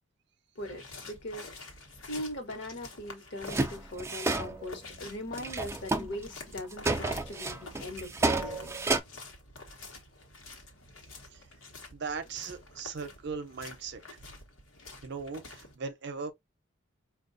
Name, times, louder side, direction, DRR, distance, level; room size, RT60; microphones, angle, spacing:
sound 1, 0.6-15.7, left 3 dB, 85° left, 1.0 m, -48 dB
voice 1, 0.6-1.7 2.0-8.7, left 1 dB, 65° left, 1.0 m, -40 dB
sound 2, 3.4-4.7 5.4-6.2 6.5-9.0, right 3 dB, 15° right, 0.4 m, -30 dB
voice 2, 11.9-14.0 15.0-16.3, right 5 dB, 60° right, 0.6 m, -38 dB
4.6 x 2.3 x 2.5 m
head